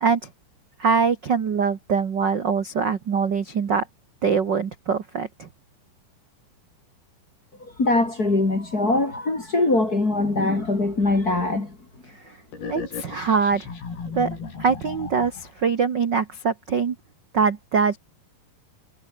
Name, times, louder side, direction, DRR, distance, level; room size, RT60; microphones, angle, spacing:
voice 1, 0.8-3.9 4.2-5.5 12.7-13.7 14.1-14.3 14.6-16.9 17.3-18.0, right 5 dB, 65° right, 1.1 m, -23 dB
voice 2, 7.6-11.8 12.6-12.7, left 2 dB, 25° left, 3.4 m, -22 dB
sound 1, 12.5-15.6, left 5 dB, 90° left, 8.3 m, -36 dB
omnidirectional pair, 4.4 m